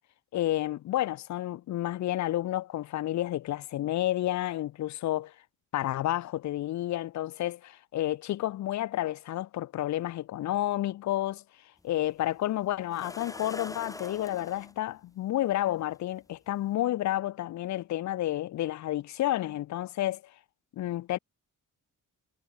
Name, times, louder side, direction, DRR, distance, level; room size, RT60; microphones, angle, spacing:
voice 1, 0.3-5.3 5.7-11.4 11.8-20.2 20.7-21.2, left 14 dB, 60° left, 0.5 m, -30 dB
sound 1, 11.8-11.9 12.9-14.7 15.9-16.0 16.6-16.7, left 2 dB, 10° left, 1.5 m, -43 dB
wide cardioid pair, 150°, 32 cm